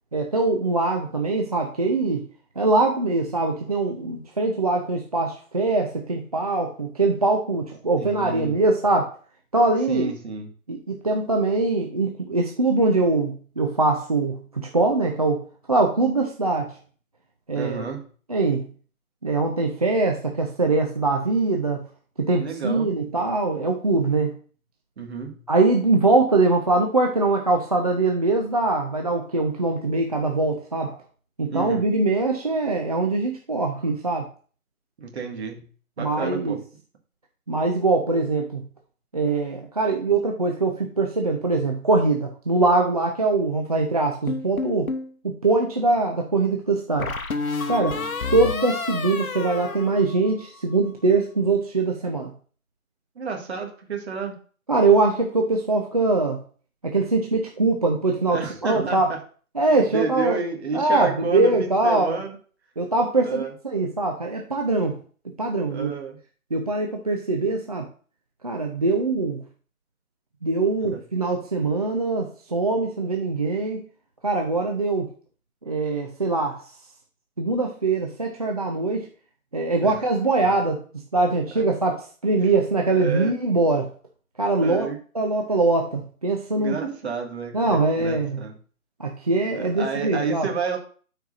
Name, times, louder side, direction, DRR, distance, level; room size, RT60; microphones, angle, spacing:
voice 1, 0.1-2.2 2.6-9.1 9.5-10.1 10.7-16.8 17.5-17.8 18.3-18.6 19.2-21.8 22.2-24.3 25.5-31.0 31.4-34.3 36.0-36.6 37.5-38.6 39.1-44.9 45.2-47.1 47.7-48.0 48.3-52.3 54.7-56.4 56.8-59.1 59.6-60.4 60.7-62.2 62.8-65.0 65.4-65.9 66.5-67.9 68.4-69.4 70.4-73.9 74.2-75.1 75.7-76.6 77.4-79.1 79.5-80.8 81.1-83.9 84.4-84.9 85.1-86.8 87.5-88.4 89.0-90.5, right 3 dB, 25° right, 1 dB, 0.5 m, -22 dB
voice 2, 8.0-8.6 9.9-10.5 17.5-18.1 22.4-22.9 25.0-25.5 31.5-31.8 35.0-35.7 36.0-36.6 47.9-48.1 53.2-54.3 58.3-59.2 59.6-62.4 63.2-63.5 65.7-66.2 70.9-71.0 79.8-79.9 82.9-83.4 84.6-85.0 86.6-88.6 89.5-90.8, right 5 dB, 50° right, 2 dB, 1.9 m, -30 dB
sound 1, 44.3-45.1 47.0-50.6, left 4 dB, 75° left, 1.0 m, -30 dB
12.5 x 4.6 x 2.5 m, 0.40 s
figure-of-eight pair, 145°, 43 cm